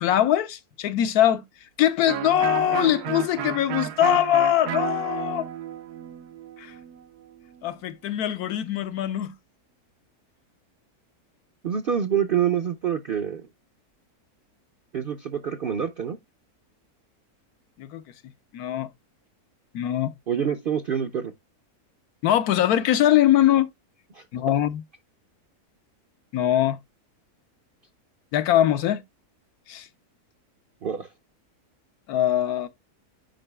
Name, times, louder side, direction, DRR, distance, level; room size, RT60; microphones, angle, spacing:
voice 1, 0.0-1.4 1.8-5.5 6.6-6.7 7.6-9.3 17.8-18.0 18.5-18.9 19.7-20.1 22.2-23.7 24.3-24.8 26.3-26.8 28.3-29.0 29.7-29.9 32.1-32.7, left 11 dB, 80° left, 1.2 m, -22 dB
Electric guitar, 2.1-7.7, right 10 dB, 90° right, 1.2 m, -33 dB
voice 2, 11.6-13.5 14.9-16.2 20.3-21.3 24.1-24.2 30.8-31.1, right 8 dB, 60° right, 0.5 m, -26 dB
8.9 x 5.3 x 2.2 m
omnidirectional pair, 1.6 m